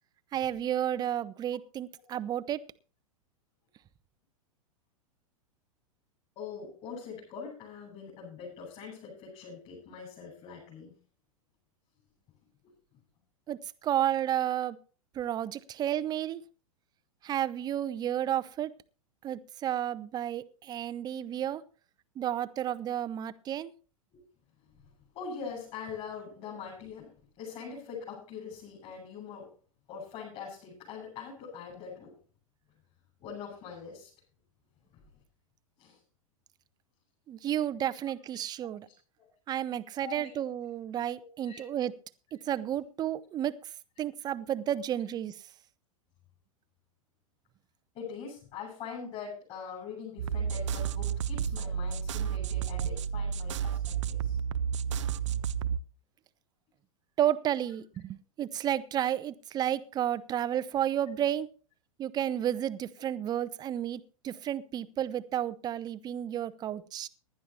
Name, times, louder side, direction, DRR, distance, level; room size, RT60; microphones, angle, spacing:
voice 1, 0.3-2.6 13.5-14.8 15.1-16.4 17.2-18.7 19.2-21.6 22.2-23.7 37.3-38.9 39.5-41.9 42.3-43.5 44.0-45.3 57.2-61.5 62.0-67.1, right 11 dB, 25° right, 15 dB, 0.8 m, -32 dB
voice 2, 6.4-11.0 24.1-24.2 25.1-27.1 27.4-29.5 29.9-32.2 33.2-34.1 35.8-36.0 38.9-39.3 40.0-40.3 41.0-41.6 47.9-54.4, left 6 dB, 35° left, -4 dB, 7.6 m, -43 dB
sound 1, 50.2-55.8, right 8 dB, 60° right, 0.6 m, -31 dB
19.5 x 11.5 x 3.1 m, 0.37 s
figure-of-eight pair, 95°, 18 cm